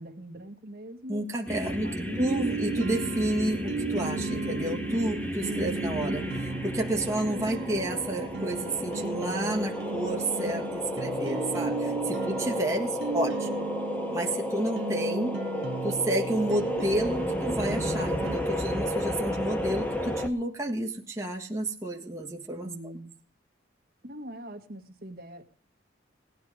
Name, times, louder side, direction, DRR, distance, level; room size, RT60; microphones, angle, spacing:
voice 1, 0.0-1.2 1.7-2.4 22.6-23.2 24.0-25.4, right 1 dB, 50° right, 4 dB, 1.6 m, -42 dB
voice 2, 1.1-1.9 2.2-13.5 14.1-15.4 15.8-22.7, right 1 dB, 15° right, 0 dB, 1.5 m, -30 dB
sound 1, 1.5-20.3, equal, 10° left, 1.1 m, -32 dB
sound 2, 2.3-18.4, right 4 dB, 70° right, 0.6 m, -36 dB
18.5 x 10.0 x 4.9 m, 0.41 s
head